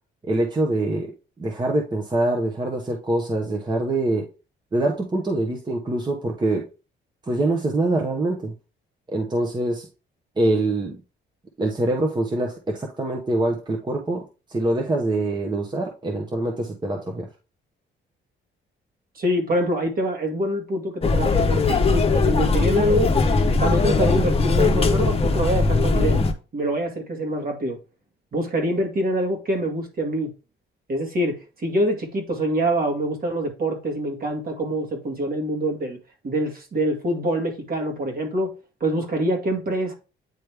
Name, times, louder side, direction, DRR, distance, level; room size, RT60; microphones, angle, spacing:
voice 1, 0.2-1.1 1.4-4.3 4.7-6.7 7.3-8.5 9.1-9.9 10.4-11.0 11.6-17.3, right 2 dB, 20° right, 1.0 m, -24 dB
voice 2, 19.2-23.1 23.6-26.2 26.5-27.8 28.3-30.3 30.9-31.4 31.6-36.0 36.2-38.5 38.8-39.9, right 1 dB, 45° right, 2.1 m, -25 dB
sound 1, 21.0-26.3, left 3 dB, 30° left, 0.9 m, -20 dB
9.3 x 3.1 x 3.4 m
cardioid pair, 90°, 20 cm